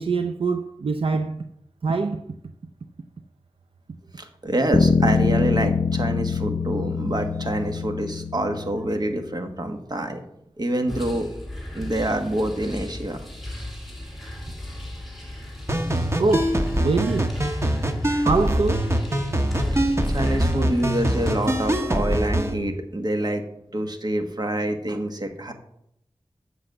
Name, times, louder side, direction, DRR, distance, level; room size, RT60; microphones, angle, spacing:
voice 1, 0.0-1.4 1.8-2.2 16.2-17.4 18.2-18.9, right 4 dB, 75° right, 0.5 m, -24 dB
voice 2, 4.2-10.2 10.6-11.3 11.7-13.2 19.7-23.4 23.7-25.5, right 1 dB, 50° right, 1.4 m, -26 dB
sound 1, 4.7-9.1, left 5 dB, 65° left, 0.6 m, -24 dB
sound 2, 10.9-21.8, left 1 dB, ahead, 2.7 m, -35 dB
sound 3, 15.7-22.5, right 1 dB, 30° right, 1.2 m, -24 dB
7.8 x 6.2 x 7.7 m
wide cardioid pair, 70°, 9 cm